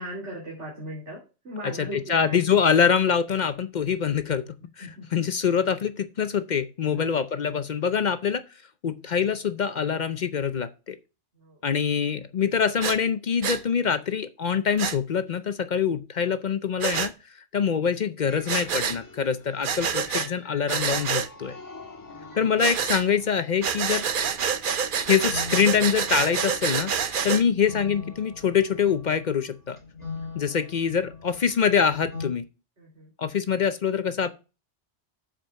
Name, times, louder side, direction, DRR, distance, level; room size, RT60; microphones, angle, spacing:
voice 1, 0.0-2.5 4.8-5.3 6.9-7.1 11.4-11.6 22.0-22.4 30.5-30.6 32.8-33.1, equal, 70° right, -4 dB, 3.2 m, -39 dB
voice 2, 1.8-4.4 4.8-8.4 8.8-11.0 11.6-17.1 17.5-21.6 22.3-24.0 25.1-29.8 30.3-32.4 33.2-34.3, left 7 dB, 50° left, 12 dB, 0.6 m, -24 dB
Breathing, 12.8-13.0 13.4-13.6 14.8-15.0 16.8-17.1 18.5-19.0 19.6-20.3 20.7-21.3 22.6-23.0 23.6-27.4, right 7 dB, 50° right, 0.8 m, -27 dB
sound 1, 18.2-32.3, left 4 dB, 15° left, 1.5 m, -42 dB
7.6 x 5.1 x 6.3 m, 0.31 s
omnidirectional pair, 1.2 m